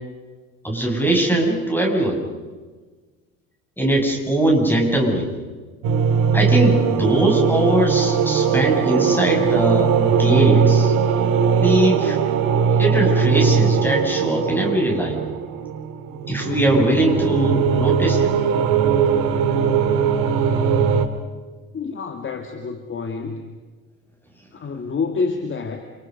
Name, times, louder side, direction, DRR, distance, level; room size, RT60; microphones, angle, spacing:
voice 1, 0.6-2.2 3.8-5.3 6.3-10.9 11.5-12.2 12.7-15.2 16.3-18.3, right 1 dB, 5° left, 1 dB, 7.6 m, -20 dB
sound 1, 5.8-21.1, right 6 dB, 50° right, 2.3 m, -19 dB
voice 2, 21.7-23.6 24.5-25.8, left 4 dB, 30° left, 6 dB, 2.4 m, -28 dB
29.0 x 28.0 x 5.5 m, 1.4 s
figure-of-eight pair, 65°, 42 cm